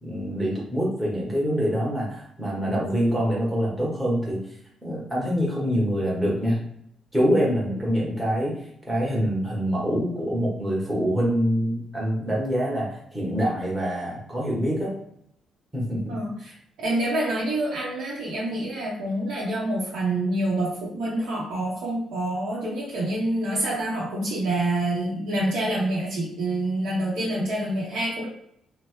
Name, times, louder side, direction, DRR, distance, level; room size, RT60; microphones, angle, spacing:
voice 1, 0.0-4.4 4.8-6.6 7.1-8.5 8.9-14.9 15.7-16.2, equal, 10° right, -5 dB, 1.1 m, -25 dB
voice 2, 16.1-28.3, right 1 dB, 80° right, -6 dB, 0.8 m, -27 dB
2.9 x 2.1 x 3.1 m, 0.71 s
cardioid pair, 90°, 0 cm